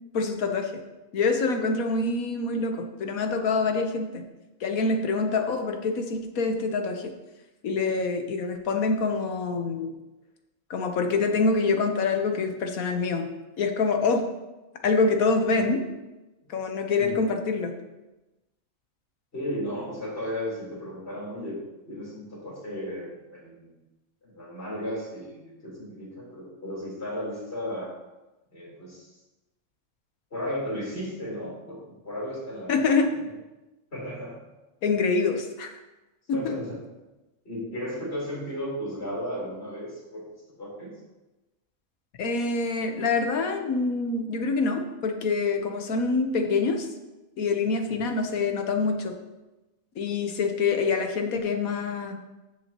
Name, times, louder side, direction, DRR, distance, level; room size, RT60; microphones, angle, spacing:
voice 1, 0.1-0.7 1.1-4.2 4.6-7.1 7.6-9.9 10.7-13.3 13.6-14.2 14.8-15.8 16.5-17.7 32.7-33.1 34.8-35.7 36.3-36.6 42.2-46.9 47.4-49.2 50.0-52.2, left 4 dB, 80° left, 5 dB, 1.5 m, -25 dB
voice 2, 19.3-21.6 21.9-23.8 24.2-27.9 28.5-29.1 30.3-32.8 33.2-33.3 33.9-34.4 36.3-36.8 37.4-40.2 40.6-40.9 47.9-48.1, equal, 45° left, -6 dB, 4.2 m, -35 dB
14.0 x 7.4 x 3.0 m, 1.1 s
omnidirectional pair, 1.5 m